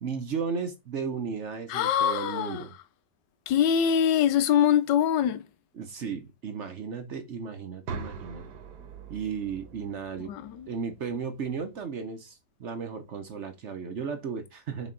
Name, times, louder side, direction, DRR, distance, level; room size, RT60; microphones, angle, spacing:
voice 1, 0.0-2.7 5.8-8.4 9.1-10.3 10.7-14.9, right 6 dB, 55° right, 0.9 m, -35 dB
voice 2, 1.7-2.6 3.5-5.4 10.3-10.7, left 9 dB, 85° left, 1.3 m, -24 dB
sound 1, 7.9-11.8, right 5 dB, 70° right, 1.5 m, -43 dB
6.3 x 4.1 x 3.8 m
omnidirectional pair, 1.8 m